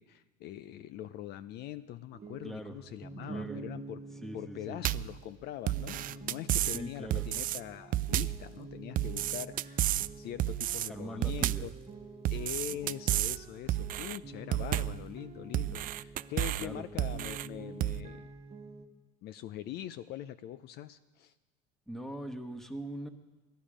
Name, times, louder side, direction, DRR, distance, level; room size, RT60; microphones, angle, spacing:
voice 1, 0.0-4.0 4.3-9.9 10.2-11.7 12.3-18.3 19.2-21.3, left 12 dB, 55° left, 13 dB, 0.6 m, -43 dB
sound 1, 2.1-18.9, right 3 dB, 30° right, 1.4 m, -48 dB
voice 2, 2.4-2.8 3.3-3.6 4.2-4.8 6.7-7.3 10.9-11.7 12.7-12.8 16.6-16.8 21.9-23.1, right 1 dB, ahead, 7 dB, 1.6 m, -41 dB
sound 2, 4.8-5.2 5.7-6.8 7.1-7.6 7.9-8.4 9.0-10.1 10.4-10.9 11.2-11.7 12.2-13.4 13.7-14.2 14.5-15.0 15.5-16.7 17.0-17.5 17.8-18.0, right 14 dB, 45° right, 0.4 m, -31 dB
17.0 x 12.0 x 5.0 m, 1.3 s
hypercardioid pair, 75°, 20 cm